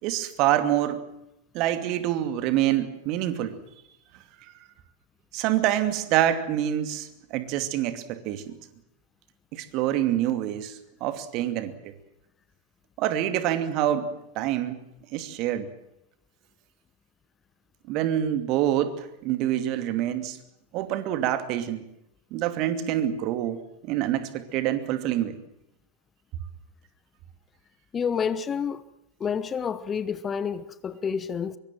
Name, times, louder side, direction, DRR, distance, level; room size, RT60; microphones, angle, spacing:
voice 1, 0.0-1.0 1.5-3.6 5.3-8.6 9.5-11.9 13.0-14.8 15.1-15.7 17.9-20.4 20.7-21.8 22.3-23.6 23.8-25.4, right 12 dB, 40° right, 2.6 m, -26 dB
voice 2, 27.9-28.8 29.2-31.6, left 7 dB, 20° left, 1.0 m, -29 dB
24.5 x 24.0 x 7.6 m
figure-of-eight pair, 90°, 0 cm